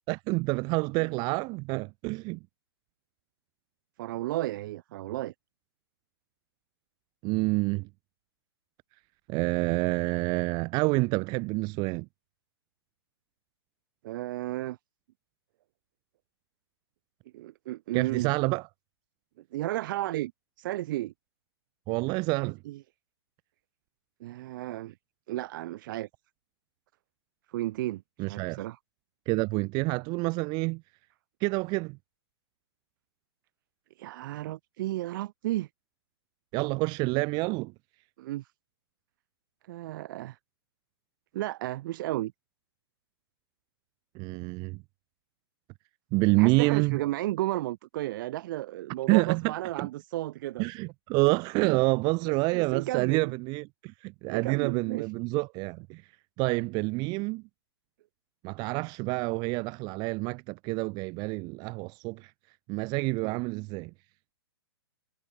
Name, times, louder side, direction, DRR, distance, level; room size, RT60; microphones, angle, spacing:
voice 1, 0.1-2.4 7.2-7.9 9.3-12.1 17.9-18.7 21.9-22.6 28.2-28.6 29.3-30.8 31.4-32.0 36.5-37.7 44.1-44.8 46.1-47.0 49.1-49.5 49.8-49.9 50.6-56.0 56.4-57.4 58.4-62.3 62.7-63.9, right 26 dB, 30° right, 1.0 m, -28 dB
voice 2, 4.0-5.3 14.0-14.8 17.3-18.3 19.5-20.3 20.6-21.1 22.4-22.8 24.2-24.9 25.3-26.1 27.5-28.8 34.0-35.7 38.2-38.5 39.7-40.4 41.3-42.3 46.4-50.7 52.2-53.3 54.3-55.1 63.2-63.4, right 16 dB, 50° right, 4.8 m, -33 dB
hypercardioid pair, 130°, 14 cm